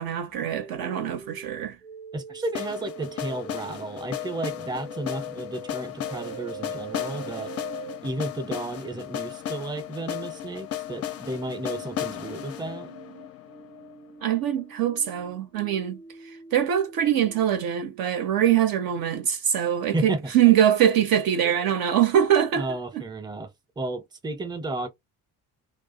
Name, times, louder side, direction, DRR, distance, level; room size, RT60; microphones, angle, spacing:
voice 1, 0.0-1.8 14.2-16.0 16.5-22.7 22.9-23.0, right 10 dB, 50° right, 0.5 m, -23 dB
sound 1, 0.5-8.0 11.3-18.2, right 5 dB, 90° right, 0.7 m, -43 dB
voice 2, 2.1-7.5 8.0-12.9 19.9-20.3 21.4-21.7 22.6-23.5 23.8-24.9, right 2 dB, 10° right, 0.6 m, -33 dB
sound 2, 2.5-14.5, left 11 dB, 35° left, 0.5 m, -35 dB
2.4 x 2.2 x 2.6 m
hypercardioid pair, 50°, 45 cm